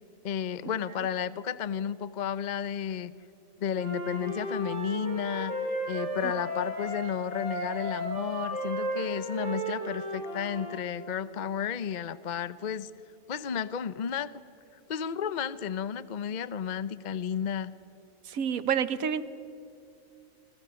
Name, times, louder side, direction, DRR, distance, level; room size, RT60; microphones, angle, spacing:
voice 1, 0.2-3.1 3.6-5.5 5.9-12.9 13.3-14.3 14.9-17.7, left 8 dB, 45° left, 15 dB, 0.6 m, -32 dB
Wind instrument woodwind instrument, 3.7-10.8, equal, 55° right, 6.2 m, -34 dB
voice 2, 18.2-19.2, right 7 dB, 85° right, 14 dB, 1.5 m, -28 dB
28.0 x 26.0 x 7.0 m, 2.6 s
omnidirectional pair, 1.4 m